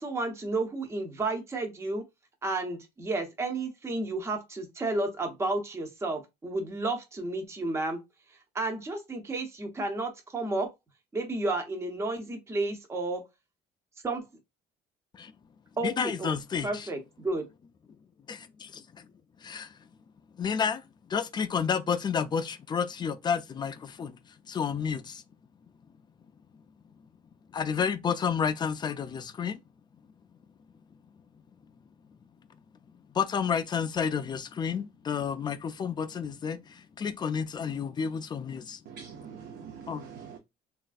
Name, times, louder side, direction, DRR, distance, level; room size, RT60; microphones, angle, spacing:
voice 1, 0.0-2.0 2.4-8.0 8.5-10.7 11.1-13.2 14.0-14.2 15.8-16.4 16.6-17.5, right 2 dB, 15° right, 0.6 m, -32 dB
voice 2, 15.8-16.9 18.3-19.1 19.4-19.8 20.3-24.2 24.5-25.2 27.5-29.6 33.1-38.8 39.9-40.1, left 6 dB, 25° left, 0.3 m, -31 dB
voice 3, 38.9-40.4, right 7 dB, 75° right, 0.6 m, -44 dB
3.1 x 2.4 x 2.4 m
cardioid pair, 110°, 17 cm